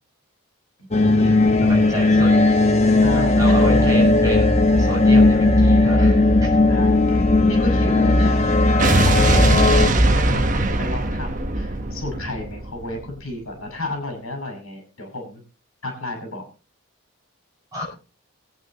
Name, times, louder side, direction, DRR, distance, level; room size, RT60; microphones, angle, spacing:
voice 1, 0.8-1.6 3.0-3.8 6.7-8.7 9.0-15.4 15.8-16.4, left 1 dB, 75° left, 3 dB, 5.6 m, -32 dB
sound 1, 0.9-9.9, left 2 dB, 30° left, 1.0 m, -16 dB
voice 2, 1.6-2.3 3.1-6.5 17.7-17.8, right 1 dB, 15° right, -1 dB, 6.4 m, -29 dB
Explosion, 8.8-13.1, right 1 dB, 35° right, 1.2 m, -19 dB
23.0 x 8.9 x 3.0 m, 0.34 s
head